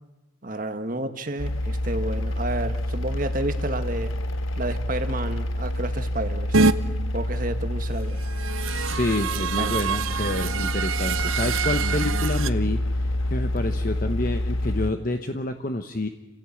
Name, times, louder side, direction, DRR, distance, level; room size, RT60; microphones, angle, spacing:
voice 1, 0.4-4.1 4.5-6.6 7.1-8.2 9.5-9.8, right 1 dB, 45° right, 8 dB, 1.6 m, -31 dB
sound 1, 1.4-14.9, left 1 dB, 85° left, 1.0 m, -28 dB
sound 2, 6.5-6.7 8.1-12.5, right 4 dB, 85° right, 0.8 m, -25 dB
voice 2, 8.6-12.8 13.3-16.1, left 2 dB, 45° left, 6 dB, 1.0 m, -28 dB
28.5 x 16.0 x 8.6 m, 1.1 s
head